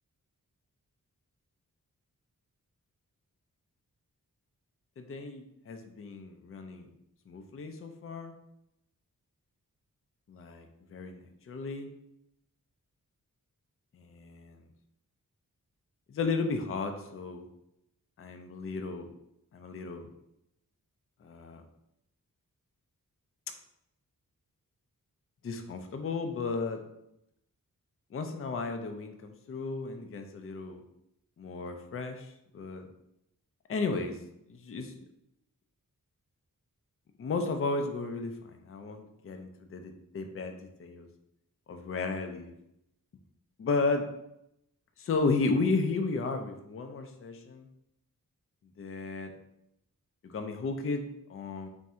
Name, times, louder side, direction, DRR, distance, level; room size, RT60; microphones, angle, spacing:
voice 1, 5.0-6.9 7.3-8.3 10.3-11.2 11.5-11.9 13.9-14.6 16.1-17.5 18.2-19.1 19.5-20.1 21.2-21.6 25.4-26.8 28.1-30.8 31.4-32.9 33.7-34.2 34.5-35.0 37.2-41.1 41.7-42.5 43.6-44.1 45.0-47.7 48.8-49.3 50.2-51.7, left 3 dB, 40° left, 6 dB, 0.4 m, -34 dB
3.5 x 2.6 x 4.2 m, 0.82 s
wide cardioid pair, 125°, 34 cm